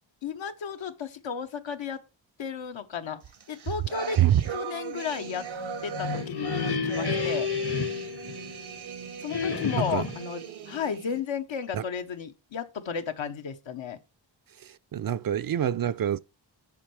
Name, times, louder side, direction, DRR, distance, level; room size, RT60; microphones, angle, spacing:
voice 1, 0.2-2.0 2.4-3.2 3.5-4.2 4.5-5.5 5.8-7.5 9.2-14.0, left 7 dB, 75° left, 1.0 m, -33 dB
sound 1, 3.3-11.2, right 7 dB, 90° right, 1.2 m, -39 dB
sound 2, 5.7-8.8 9.3-10.3, left 5 dB, 55° left, 1.2 m, -31 dB
voice 2, 14.6-16.2, right 11 dB, 50° right, 0.4 m, -25 dB
7.4 x 4.6 x 4.7 m
cardioid pair, 50°, 46 cm